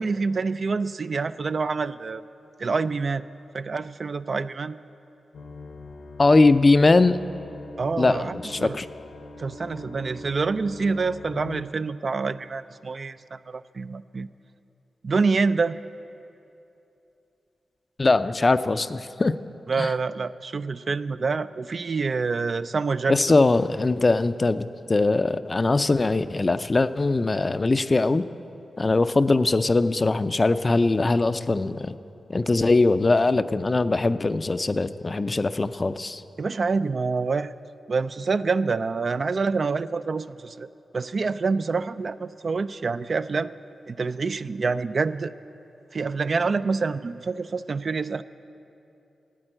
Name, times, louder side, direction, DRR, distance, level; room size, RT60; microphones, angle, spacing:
voice 1, 0.0-2.2 2.6-3.2 3.5-4.8 7.8-8.8 9.4-14.3 15.0-15.8 19.7-23.2 36.4-37.5 37.9-40.7 40.9-43.5 43.9-45.3 45.9-48.2, right 4 dB, 50° right, 13 dB, 0.3 m, -26 dB
sound 1, 5.3-11.6, left 2 dB, 70° left, 0.8 m, -41 dB
voice 2, 6.2-7.2 8.0-8.9 18.0-19.3 19.8-19.9 23.1-28.2 28.8-31.9 32.3-36.2, left 3 dB, 35° left, 12 dB, 0.4 m, -21 dB
12.5 x 8.7 x 8.9 m, 2.8 s
cardioid pair, 70°, 0 cm